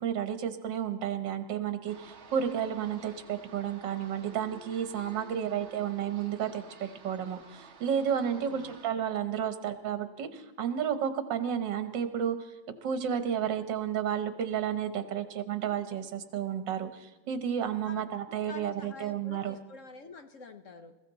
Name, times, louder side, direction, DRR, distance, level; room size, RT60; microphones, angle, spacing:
voice 1, 0.0-12.5 12.8-19.6, right 8 dB, 75° right, 10 dB, 1.8 m, -32 dB
sound 1, 1.9-8.9, right 4 dB, 40° right, 1.3 m, -52 dB
voice 2, 8.3-8.7 15.1-15.2 17.9-18.1 18.4-20.9, left 4 dB, 50° left, 8 dB, 1.1 m, -47 dB
20.5 x 15.0 x 4.1 m, 1.1 s
omnidirectional pair, 2.0 m